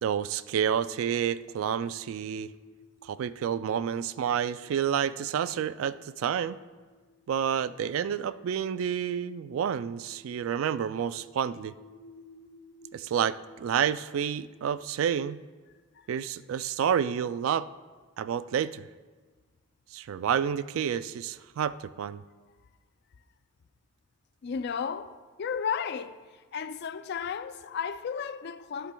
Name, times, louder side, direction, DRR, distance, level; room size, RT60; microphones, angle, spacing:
voice 1, 0.0-2.5 3.0-6.6 7.3-11.7 12.9-15.4 16.1-17.7 18.2-18.9 19.9-22.2, right 8 dB, 75° right, 0.3 m, -29 dB
sound 1, 0.6-16.9, left 1 dB, 75° left, 1.3 m, -57 dB
voice 2, 24.4-26.2 26.5-28.9, left 6 dB, 55° left, 0.4 m, -33 dB
11.5 x 10.5 x 2.3 m
head